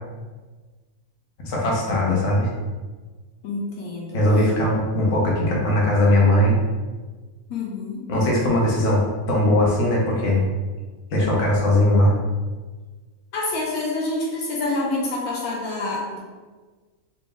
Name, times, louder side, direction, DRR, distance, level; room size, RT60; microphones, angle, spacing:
voice 1, 1.4-2.5 4.1-6.6 8.1-10.4 11.1-12.1, left 1 dB, 60° left, -3 dB, 1.1 m, -19 dB
voice 2, 3.4-4.2 7.5-8.0 13.3-16.2, left 2 dB, 80° left, -3 dB, 1.2 m, -27 dB
4.0 x 2.0 x 3.5 m, 1.4 s
omnidirectional pair, 1.5 m